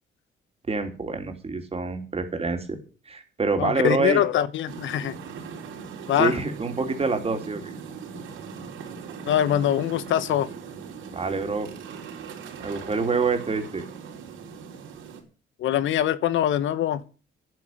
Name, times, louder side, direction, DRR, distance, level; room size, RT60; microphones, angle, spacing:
voice 1, 0.7-2.8 3.1-4.2 6.2-7.6 11.1-11.7 12.6-13.8, right 4 dB, 30° right, 3.4 m, -26 dB
voice 2, 3.6-5.2 6.1-6.3 9.2-10.5 15.6-17.0, left 11 dB, 75° left, 1.0 m, -23 dB
sound 1, 4.7-15.2, right 6 dB, 85° right, 4.5 m, -40 dB
10.5 x 9.4 x 7.6 m
cardioid pair, 90°, 20 cm